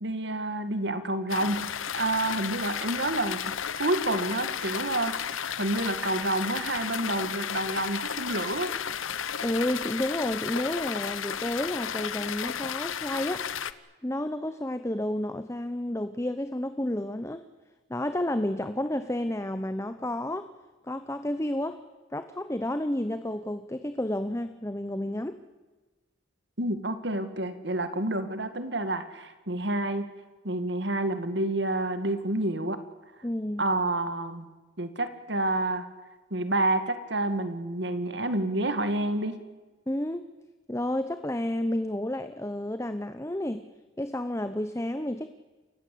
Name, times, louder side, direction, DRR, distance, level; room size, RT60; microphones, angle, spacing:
voice 1, 0.0-1.7 2.0-3.5 3.8-5.2 5.6-8.7 26.6-30.1 30.4-32.8 33.6-34.5 34.8-35.9 36.3-39.4, right 2 dB, 60° right, 10 dB, 2.1 m, -29 dB
sound 1, 1.3-13.7, left 8 dB, 85° left, 0.9 m, -33 dB
voice 2, 9.4-13.5 14.0-17.4 17.9-20.5 20.9-21.8 22.1-25.4 33.2-33.6 39.9-40.2 40.7-43.6 44.0-45.3, left 1 dB, 15° left, 10 dB, 0.8 m, -31 dB
28.5 x 15.5 x 8.5 m, 1.2 s
head